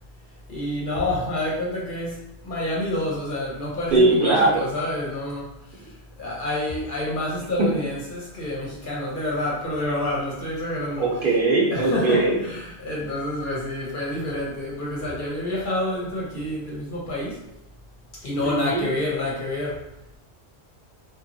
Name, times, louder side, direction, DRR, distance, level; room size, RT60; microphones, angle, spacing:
voice 1, 0.5-5.9 6.2-11.3 11.7-17.4 18.2-19.8, left 1 dB, 50° left, -5 dB, 0.9 m, -28 dB
voice 2, 3.9-4.6 7.6-7.7 11.0-12.4 18.4-18.9, right 2 dB, 55° right, -4 dB, 0.8 m, -20 dB
2.9 x 2.4 x 2.6 m, 0.87 s
omnidirectional pair, 1.2 m